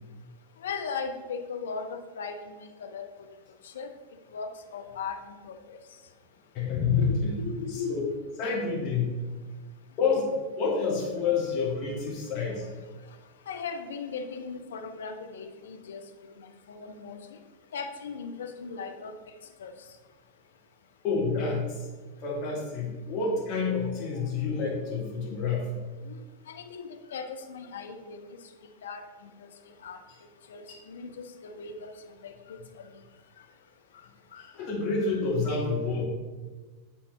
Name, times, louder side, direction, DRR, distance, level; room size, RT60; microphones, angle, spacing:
voice 1, 0.6-3.1 3.6-3.9 4.3-5.8 7.0-7.9 13.5-16.1 16.4-17.2 17.7-19.1 19.6-19.7 24.9-25.0 26.0-26.2 26.5-28.3 28.8-30.0 30.5-31.9 32.2-32.9 34.3-34.5, left 5 dB, 65° left, 6 dB, 0.6 m, -38 dB
voice 2, 6.5-7.4 7.7-8.1 8.4-9.2 10.0-12.7 21.0-21.9 22.2-25.7 30.7-30.8 34.4-36.1, left 4 dB, 40° left, -3 dB, 2.1 m, -28 dB
9.1 x 4.2 x 3.4 m, 1.3 s
figure-of-eight pair, 90°, 0 cm